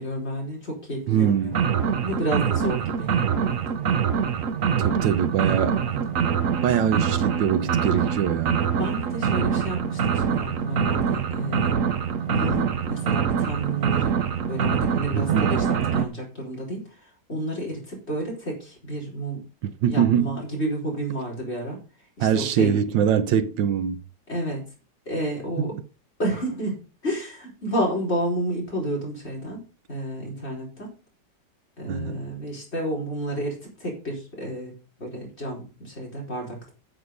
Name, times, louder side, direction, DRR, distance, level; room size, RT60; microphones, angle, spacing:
voice 1, 0.0-1.5 2.0-3.6 5.8-6.0 8.8-11.8 12.3-19.4 19.9-21.8 22.2-22.8 24.3-24.6 25.1-25.8 26.2-26.8 27.0-29.6 29.9-30.9 31.8-34.7 35.0-36.7, right 1 dB, 35° left, 4.9 m, -30 dB
voice 2, 1.1-1.6 4.8-6.1 6.6-8.7 15.1-15.5 19.6-20.4 22.2-24.0 25.6-25.8 31.9-32.2, right 8 dB, 80° right, 1.5 m, -23 dB
sound 1, 1.5-16.0, right 7 dB, 55° right, 1.1 m, -24 dB
9.2 x 8.2 x 5.3 m
omnidirectional pair, 2.0 m